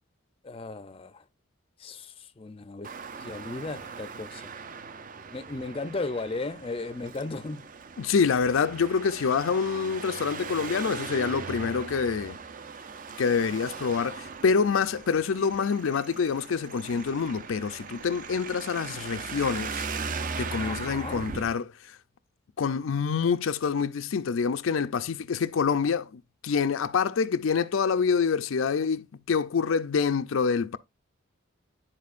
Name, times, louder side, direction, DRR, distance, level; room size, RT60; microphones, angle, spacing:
voice 1, 0.4-1.2 1.8-2.9 3.2-4.5 5.3-7.6 20.6-21.2, left 3 dB, 25° left, 0.5 m, -36 dB
Traffic noise roadway noise, 2.8-21.5, right 5 dB, 40° right, 0.5 m, -39 dB
voice 2, 8.0-12.4 13.2-19.9 20.4-22.0 22.6-30.8, left 5 dB, 80° left, 0.5 m, -26 dB
11.5 x 4.4 x 2.5 m
head